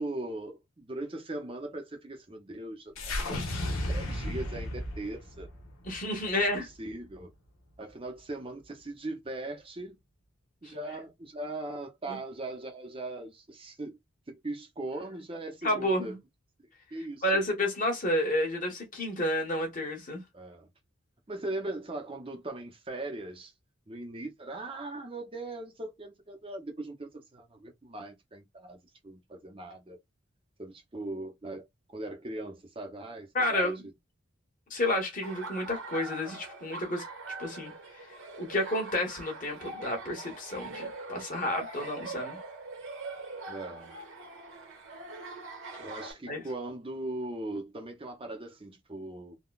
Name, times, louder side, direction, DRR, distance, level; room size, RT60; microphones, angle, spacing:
voice 1, 0.0-5.5 6.6-7.3 7.8-10.0 10.6-14.0 14.3-16.1 16.9-17.5 20.3-20.7 21.3-23.5 23.9-28.8 29.0-30.0 30.6-33.7 43.5-44.0 45.8-49.4, right 2 dB, 25° right, 0.6 m, -39 dB
sound 1, 3.0-7.3, left 1 dB, 85° left, 1.0 m, -35 dB
voice 2, 5.8-6.7 12.1-12.2 15.6-16.2 17.2-20.2 33.3-33.8 34.7-37.0 37.4-37.7 38.4-42.4 46.3-46.4, left 1 dB, 40° left, 1.2 m, -30 dB
Laughter, 35.2-46.1, right 3 dB, 80° right, 1.2 m, -43 dB
3.7 x 2.2 x 2.3 m
head